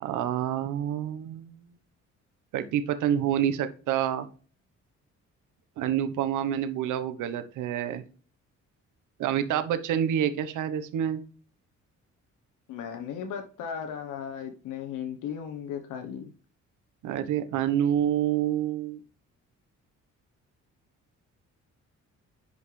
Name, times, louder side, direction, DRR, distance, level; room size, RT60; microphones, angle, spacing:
voice 1, 0.0-1.6 2.5-4.3 5.8-8.0 9.2-11.2 17.0-19.0, right 10 dB, 85° right, 10 dB, 1.1 m, -27 dB
voice 2, 12.7-16.3, left 8 dB, 90° left, 6 dB, 1.0 m, -36 dB
9.8 x 5.4 x 3.3 m, 0.39 s
cardioid pair, 90°, 30 cm